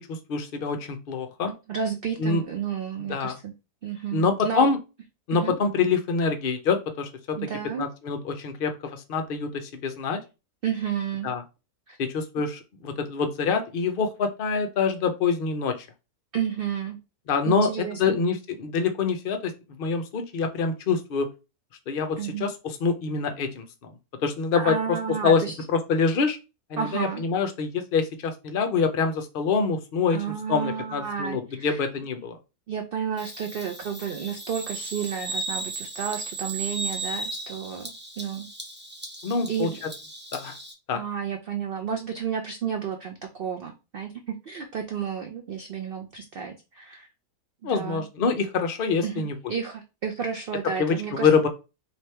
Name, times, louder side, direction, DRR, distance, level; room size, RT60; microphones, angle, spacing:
voice 1, 0.1-1.5 2.2-2.4 3.0-3.4 4.1-4.8 5.3-7.4 7.8-10.2 11.2-11.4 12.0-15.8 17.3-19.5 19.8-21.3 21.9-23.6 24.2-24.7 25.2-25.4 25.7-26.4 26.7-30.2 30.5-32.4 39.2-39.7 40.3-40.5 40.9-41.0 47.6-49.4 50.8-51.5, left 5 dB, 55° left, 7 dB, 0.6 m, -25 dB
voice 2, 1.7-3.5 3.8-4.7 5.3-5.6 7.3-7.9 10.6-11.3 11.9-12.0 16.3-17.0 17.4-18.2 22.2-22.5 24.5-25.6 26.8-27.2 30.1-31.8 32.7-38.5 39.5-39.8 40.9-47.1 47.6-48.0 49.0-51.3, right 7 dB, 75° right, 4 dB, 0.5 m, -31 dB
Bird vocalization bird call bird song, 33.2-40.7, right 2 dB, 15° right, 0.4 m, -36 dB
3.3 x 2.9 x 4.3 m, 0.28 s
omnidirectional pair, 1.6 m